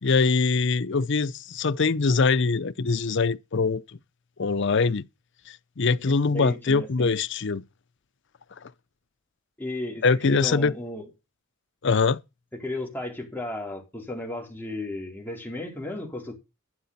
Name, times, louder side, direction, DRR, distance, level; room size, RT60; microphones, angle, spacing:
voice 1, 0.0-3.8 4.4-5.0 5.8-7.6 10.0-10.7 11.8-12.2, left 4 dB, 60° left, 0.7 m, -23 dB
voice 2, 6.3-7.2 9.6-11.1 12.6-16.3, left 2 dB, 10° left, 4.3 m, -34 dB
12.0 x 9.5 x 4.2 m
head